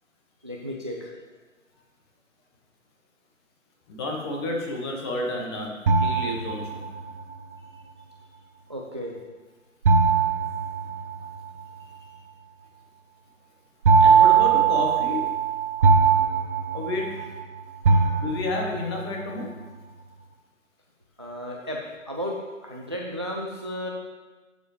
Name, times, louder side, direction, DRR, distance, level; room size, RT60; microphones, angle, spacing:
voice 1, 0.4-1.1 8.7-9.1 11.8-12.1 17.9-18.1 21.2-21.8 22.1-22.3 22.6-23.9, equal, 20° right, -1 dB, 0.4 m, -34 dB
voice 2, 3.9-5.7 6.0-6.8 14.0-15.3 16.7-17.2 18.2-19.5, left 2 dB, 20° left, 0 dB, 1.2 m, -30 dB
sound 1, 5.9-7.1 9.8-11.5 13.8-17.4 17.8-18.8, right 5 dB, 40° right, 1.0 m, -20 dB
12.5 x 7.0 x 3.2 m, 1.3 s
figure-of-eight pair, 140°, 40 cm